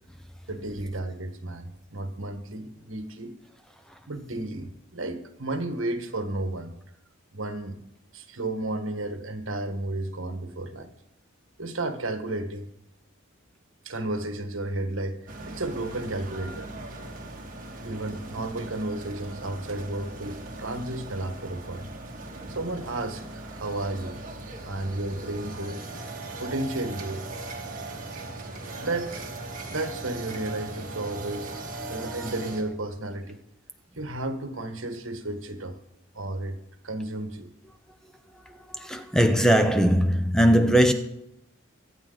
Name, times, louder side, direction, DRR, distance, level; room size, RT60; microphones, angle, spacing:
voice 1, 0.5-3.3 4.0-6.7 7.3-7.8 8.1-10.9 11.6-12.7 13.8-15.2 15.5-16.7 17.8-21.9 22.5-24.2 24.6-25.8 26.4-27.2 28.8-29.1 29.7-31.5 31.9-33.4 34.0-35.8 36.1-36.6 36.8-37.5, right 2 dB, 70° right, 1.5 m, -32 dB
sound 1, 15.3-32.6, right 2 dB, 40° right, 2.3 m, -39 dB
voice 2, 31.8-32.3 38.5-40.9, equal, 5° left, 0.7 m, -21 dB
24.0 x 8.5 x 4.0 m
head